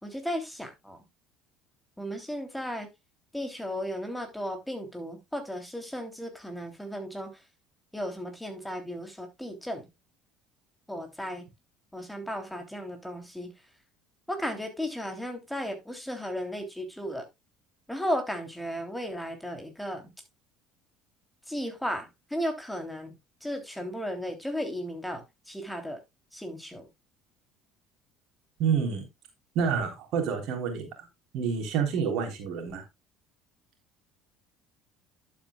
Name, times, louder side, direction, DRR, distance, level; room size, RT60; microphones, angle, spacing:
voice 1, 0.0-1.0 2.0-2.9 3.3-7.3 7.9-9.9 10.9-11.5 11.9-13.5 14.3-17.2 17.9-20.1 21.5-23.1 23.4-26.0 26.3-26.9, equal, 5° left, 3.2 m, -35 dB
voice 2, 28.6-29.0 29.6-30.9 31.3-32.8, right 6 dB, 60° right, 3.4 m, -28 dB
11.5 x 8.5 x 2.3 m
hypercardioid pair, 60°, 0 cm